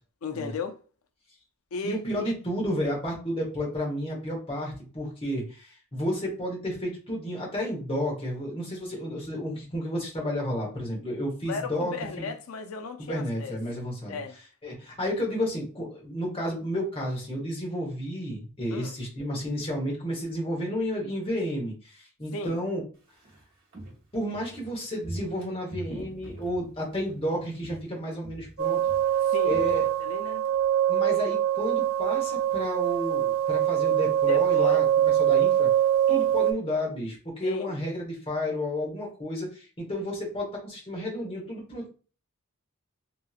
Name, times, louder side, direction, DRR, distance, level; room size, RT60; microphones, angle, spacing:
voice 1, 0.2-0.8 1.7-2.0 11.5-13.6 14.1-14.3 18.7-18.9 22.3-22.6 29.3-29.7 30.0-30.4 34.3-34.8 37.4-37.8, left 4 dB, 70° left, 0.5 m, -35 dB
voice 2, 1.8-12.3 13.0-14.2 14.6-22.8 24.1-28.8 29.4-29.8 30.9-35.7 36.1-41.9, equal, 25° left, 1.1 m, -31 dB
Walk footsteps, 23.0-27.3 27.5-27.9 28.2-30.5 30.8-30.9, right 1 dB, 40° right, 1.1 m, -44 dB
sound 1, 28.6-36.5, right 11 dB, 70° right, 0.4 m, -23 dB
3.0 x 2.7 x 2.4 m
head